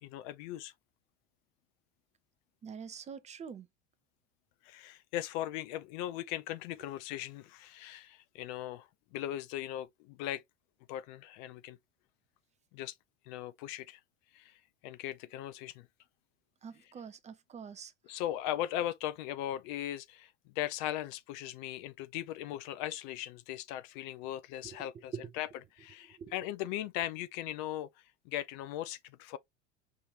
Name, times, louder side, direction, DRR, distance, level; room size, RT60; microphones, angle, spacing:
voice 1, 0.0-0.7 4.6-10.4 10.9-11.8 12.7-12.9 13.3-14.0 14.3-15.9 18.1-25.5 25.8-27.9 28.3-29.4, left 13 dB, 40° left, 0.5 m, -38 dB
voice 2, 2.6-3.7 16.6-18.2 24.6-24.8 25.1-25.3 26.2-26.4, right 6 dB, 20° right, 0.5 m, -45 dB
5.5 x 2.6 x 3.1 m
figure-of-eight pair, 75°, 36 cm